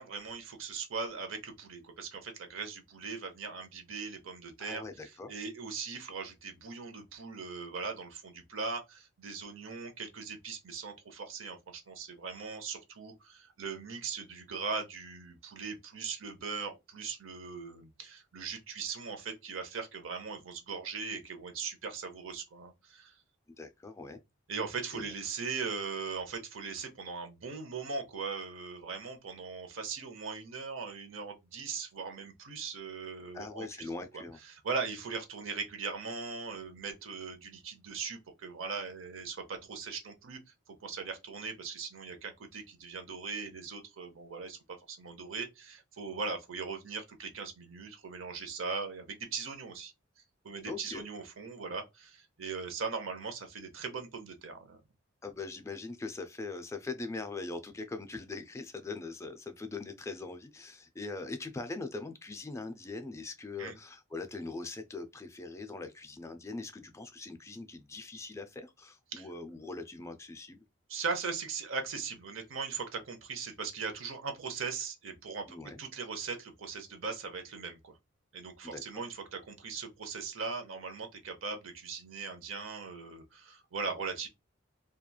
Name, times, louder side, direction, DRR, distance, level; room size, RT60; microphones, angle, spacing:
voice 1, 0.0-23.1 24.5-33.7 34.1-40.4 40.7-49.9 50.4-54.8 63.6-63.8 69.1-69.3 70.9-78.0 78.3-84.3, right 5 dB, 75° right, 0.7 m, -39 dB
voice 2, 4.6-5.3 23.6-24.2 24.9-25.1 33.3-34.4 50.6-51.0 55.2-70.6 75.5-75.8 78.6-78.8, left 3 dB, 15° left, 0.3 m, -41 dB
2.9 x 2.3 x 2.2 m
head